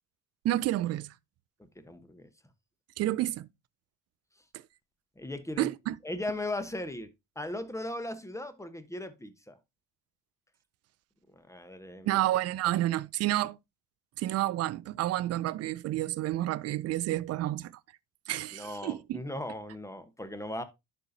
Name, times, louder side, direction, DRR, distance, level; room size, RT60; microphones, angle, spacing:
voice 1, 0.4-1.1 3.0-3.5 5.6-5.9 12.0-13.6 14.2-17.7 18.3-19.2, right 14 dB, 35° right, 0.4 m, -30 dB
voice 2, 1.8-2.3 5.2-5.7 6.0-7.1 7.3-9.6 11.3-12.2 18.5-20.6, left 1 dB, 5° left, 1.1 m, -38 dB
11.0 x 4.4 x 2.8 m
hypercardioid pair, 65°, 48 cm